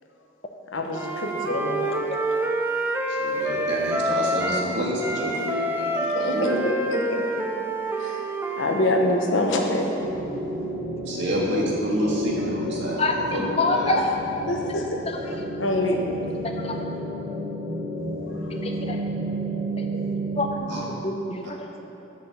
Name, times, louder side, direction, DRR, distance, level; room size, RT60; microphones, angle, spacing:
voice 1, 0.7-2.0 6.1-6.6 6.9-7.2 8.0-8.2 8.6-9.9 14.5-15.0 15.6-16.0 16.6-16.8 18.4-18.5, left 1 dB, 90° left, 2 dB, 1.0 m, -25 dB
Wind instrument woodwind instrument, 0.9-4.7 5.0-8.8, right 1 dB, 10° right, 0.5 m, -27 dB
voice 2, 3.1-6.6 11.0-13.9 20.7-20.8, equal, 70° right, -3 dB, 1.7 m, -28 dB
sound 1, 10.0-20.6, right 1 dB, 25° right, 0.9 m, -31 dB
voice 3, 13.0-14.1 15.1-15.2 16.4-16.8 18.5-19.0 19.8-20.0 20.3-20.5 20.9-21.8, left 2 dB, 30° left, 3 dB, 0.7 m, -27 dB
6.7 x 6.4 x 6.9 m, 2.9 s
head